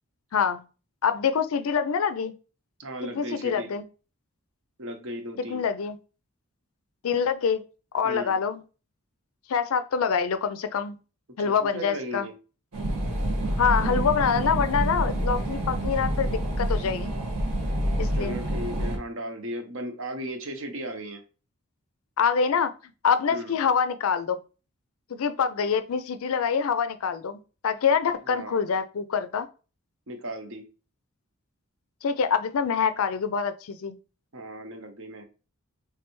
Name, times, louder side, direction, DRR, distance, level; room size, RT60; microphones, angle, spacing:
voice 1, 1.0-2.3 3.2-3.8 5.4-6.0 7.0-7.6 7.9-8.6 9.5-11.0 11.4-12.3 13.6-17.1 18.0-18.4 22.2-22.7 23.0-24.4 25.1-29.5 32.0-33.9, left 6 dB, 70° left, 0.4 m, -25 dB
voice 2, 2.8-3.7 4.8-5.7 8.0-8.4 11.4-12.4 18.1-21.2 23.3-23.6 28.2-28.8 30.1-30.7 34.3-35.2, equal, 60° right, 0.8 m, -36 dB
sound 1, 12.7-19.0, right 1 dB, 90° right, 1.6 m, -27 dB
3.3 x 3.2 x 3.0 m
head